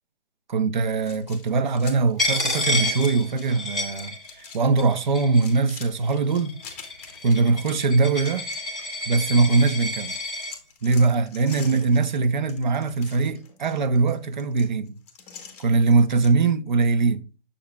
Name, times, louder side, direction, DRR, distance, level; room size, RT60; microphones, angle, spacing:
voice 1, 0.5-6.5 7.2-8.5 9.1-10.1 10.8-15.0 15.6-17.2, right 4 dB, 50° right, 0.7 m, -21 dB
sound 1, 1.0-3.6 3.8-4.6 4.9-9.4 9.7-16.3, left 6 dB, 15° left, 0.8 m, -45 dB
Coin (dropping), 2.2-4.5 4.8-5.6 6.3-10.5, left 1 dB, 5° right, 0.4 m, -29 dB
7.1 x 6.9 x 2.2 m
hypercardioid pair, 175°, 30 cm